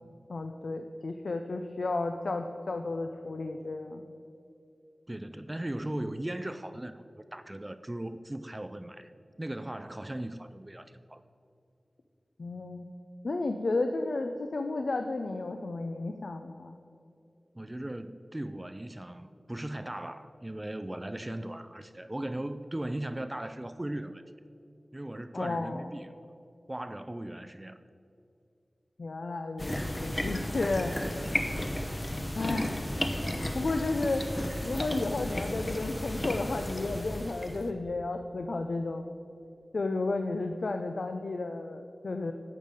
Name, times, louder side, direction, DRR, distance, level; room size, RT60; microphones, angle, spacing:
voice 1, 0.3-4.0 12.4-12.9 13.2-16.7 25.3-25.9 29.0-29.8 30.0-31.6 32.4-32.9 33.5-34.2 34.6-39.1 39.7-42.3, left 3 dB, 75° left, 6 dB, 0.5 m, -33 dB
voice 2, 5.1-7.0 7.3-9.1 9.4-11.2 17.5-24.2 24.9-26.1 26.7-27.8, right 1 dB, 20° right, 11 dB, 0.4 m, -38 dB
sound 1, 29.6-37.7, left 1 dB, 25° left, 0.9 m, -33 dB
12.0 x 7.5 x 5.1 m, 2.7 s
wide cardioid pair, 60°, 0 cm